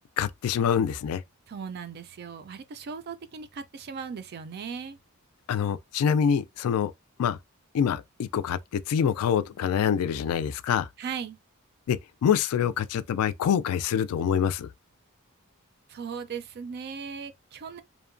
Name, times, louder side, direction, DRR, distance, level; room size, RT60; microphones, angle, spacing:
voice 1, 0.2-1.2 5.5-6.9 7.2-7.4 7.7-10.9 11.9-14.7, left 8 dB, 85° left, 0.3 m, -25 dB
voice 2, 1.5-5.0 11.0-11.4 15.9-17.8, right 6 dB, 45° right, 0.4 m, -38 dB
2.8 x 2.1 x 2.5 m
head